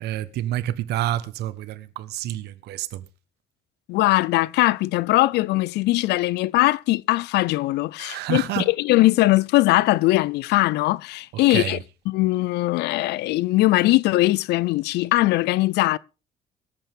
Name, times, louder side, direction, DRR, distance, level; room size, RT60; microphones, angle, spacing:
voice 1, 0.0-3.0 8.0-8.7 11.5-11.8, right 13 dB, 80° right, 1.2 m, -28 dB
voice 2, 3.9-11.8 12.1-16.0, left 18 dB, 80° left, 0.5 m, -20 dB
23.0 x 8.4 x 3.6 m
cardioid pair, 110°, 17 cm